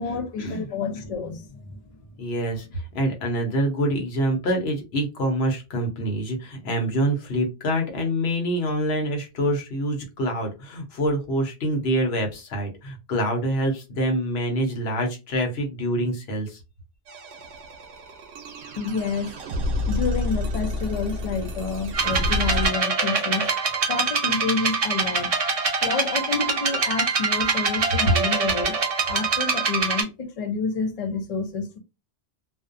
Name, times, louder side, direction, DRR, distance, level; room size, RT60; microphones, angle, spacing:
voice 1, 0.0-1.8 18.8-19.3 19.9-23.5 23.9-25.4 25.8-28.8 29.1-31.8, left 4 dB, 45° left, 0.5 m, -29 dB
voice 2, 2.2-16.6, equal, 70° left, 1.0 m, -26 dB
sound 1, 17.1-22.7, left 2 dB, 75° right, 0.9 m, -29 dB
sound 2, 21.9-30.0, right 4 dB, 45° right, 0.5 m, -24 dB
2.5 x 2.1 x 2.4 m
omnidirectional pair, 1.1 m